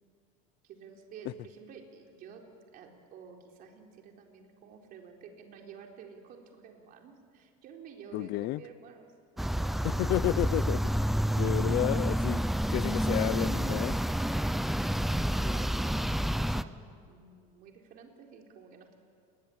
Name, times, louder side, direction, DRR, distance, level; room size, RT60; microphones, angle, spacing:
voice 1, 0.6-2.4 2.7-9.8 14.7-15.7 16.0-19.0, right 6 dB, 50° right, 4.2 m, -51 dB
voice 2, 8.1-8.6 9.8-10.8 11.4-14.0, left 17 dB, 55° left, 0.6 m, -31 dB
sound 1, 9.4-16.6, equal, ahead, 0.6 m, -29 dB
28.0 x 21.5 x 8.8 m
cardioid pair, 140°, 19 cm